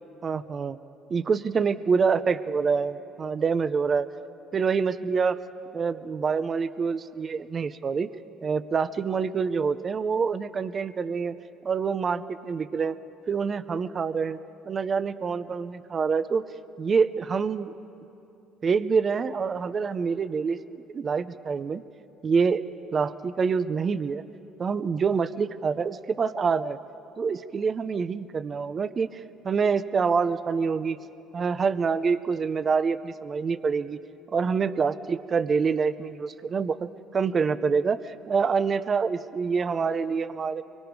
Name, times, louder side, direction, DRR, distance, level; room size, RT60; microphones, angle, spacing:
voice 1, 0.2-0.8 1.1-4.1 4.5-5.4 5.7-8.1 8.4-11.4 11.6-13.0 13.3-14.4 14.7-16.4 16.8-17.7 18.6-21.8 22.2-22.6 22.9-24.2 24.6-26.8 27.2-31.0 31.3-34.0 34.3-40.6, right 5 dB, 40° right, 14 dB, 0.6 m, -26 dB
24.5 x 23.5 x 4.7 m, 2.8 s
supercardioid pair, 85°, 0 cm